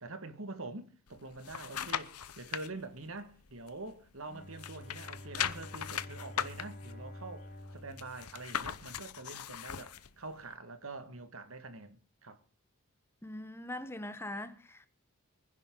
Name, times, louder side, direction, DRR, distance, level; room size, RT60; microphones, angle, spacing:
voice 1, 0.0-12.4, right 3 dB, 65° right, 1.9 m, -45 dB
Turning Pages of Book, 1.1-2.7 3.2-4.3 4.5-10.1 10.5-10.6, left 9 dB, 90° left, 0.9 m, -39 dB
Bowed string instrument, 4.3-9.2, left 1 dB, 45° left, 3.3 m, -49 dB
voice 2, 13.2-14.9, left 1 dB, 10° left, 1.1 m, -42 dB
24.0 x 10.5 x 3.9 m
head